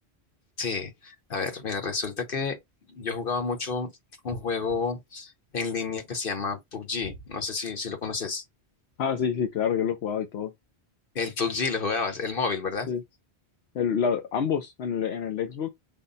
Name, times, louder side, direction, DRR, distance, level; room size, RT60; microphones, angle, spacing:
voice 1, 0.6-2.6 2.9-3.9 4.2-8.4 11.1-12.9, left 4 dB, 60° left, 1.2 m, -30 dB
voice 2, 9.0-10.5 12.9-13.0 13.7-15.7, left 7 dB, 75° left, 0.9 m, -27 dB
5.4 x 2.2 x 4.0 m
omnidirectional pair, 1.1 m